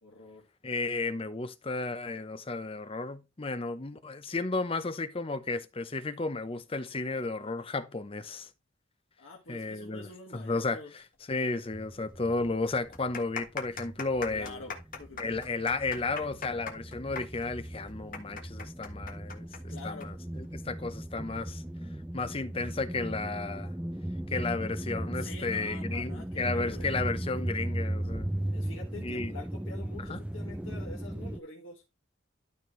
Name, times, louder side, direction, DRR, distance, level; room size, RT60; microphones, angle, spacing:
voice 1, 0.0-0.5 9.2-10.9 14.3-15.2 19.7-20.1 25.1-26.9 28.5-31.8, left 3 dB, 75° left, 1.8 m, -46 dB
voice 2, 0.6-8.5 9.5-11.0 11.3-14.6 15.2-21.6 22.1-23.7 24.3-28.3 29.0-29.3 30.1-30.2, left 3 dB, 30° left, 0.7 m, -33 dB
One woman claping, 11.7-11.8 12.1-12.2 12.8-20.1 20.3-20.4 21.2-21.5, left 5 dB, 45° left, 1.4 m, -40 dB
sound 1, 11.7-13.4 13.6-31.4, right 1 dB, 5° right, 0.4 m, -37 dB
12.5 x 4.4 x 3.2 m
head